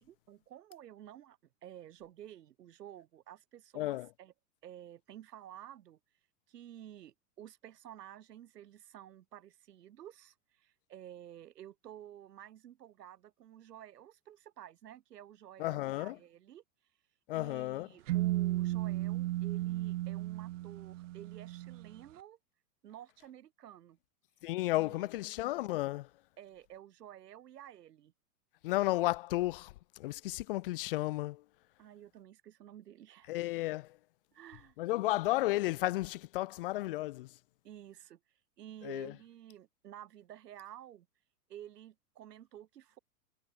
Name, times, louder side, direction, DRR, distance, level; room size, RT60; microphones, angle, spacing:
voice 1, 0.0-4.3 4.6-6.0 6.5-16.6 17.3-22.4 22.8-24.0 24.7-25.1 26.4-28.1 31.8-33.3 34.3-34.8 37.6-38.2 38.6-41.1 41.5-43.0, right 11 dB, 85° right, 3.5 m, -52 dB
voice 2, 3.7-4.1 15.6-16.2 17.3-17.9 24.4-26.1 28.6-31.4 33.3-34.0 34.8-37.3 38.8-39.1, left 18 dB, 35° left, 0.8 m, -33 dB
sound 1, 18.1-21.9, right 16 dB, 50° right, 1.3 m, -34 dB
supercardioid pair, 170°, 47 cm